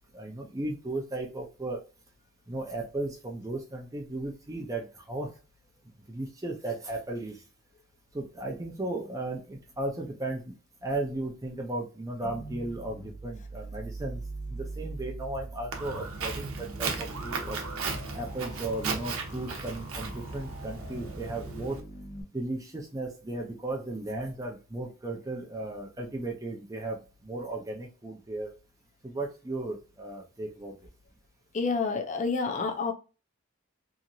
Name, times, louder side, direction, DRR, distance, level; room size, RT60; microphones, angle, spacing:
voice 1, 0.1-1.8 2.5-5.3 6.1-7.4 8.1-10.5 10.8-14.2 14.5-17.6 18.1-21.8 22.3-27.0 27.2-28.5 29.0-30.8, right 2 dB, 15° right, 0.5 m, -35 dB
sound 1, 12.2-22.2, right 2 dB, 85° left, 0.6 m, -42 dB
Walk footsteps, 15.7-21.8, right 4 dB, 80° right, 0.7 m, -36 dB
voice 2, 31.5-32.9, left 4 dB, 35° left, 0.5 m, -28 dB
2.9 x 2.5 x 2.6 m
head